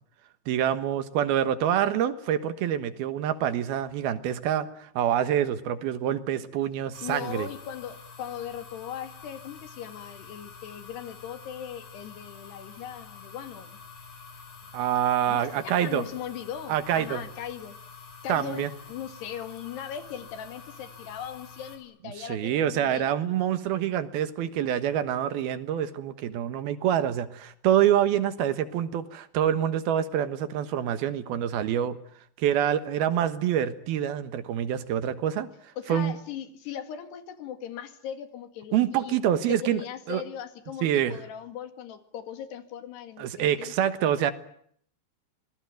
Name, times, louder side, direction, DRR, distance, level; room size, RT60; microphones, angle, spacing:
voice 1, 0.5-7.5 14.7-16.0 16.7-17.2 18.3-18.7 22.2-32.0 32.4-35.5 35.9-36.1 38.7-39.8 40.1-40.2 40.8-41.2 43.2-44.3, right 10 dB, 70° right, 12 dB, 3.1 m, -26 dB
sound 1, 6.9-21.8, left 5 dB, 45° left, 6.1 m, -47 dB
voice 2, 7.0-13.8 15.3-17.8 18.2-23.1 35.8-39.2 39.5-43.9, left 9 dB, 80° left, 9 dB, 4.1 m, -39 dB
26.0 x 20.5 x 9.2 m, 0.65 s
omnidirectional pair, 4.7 m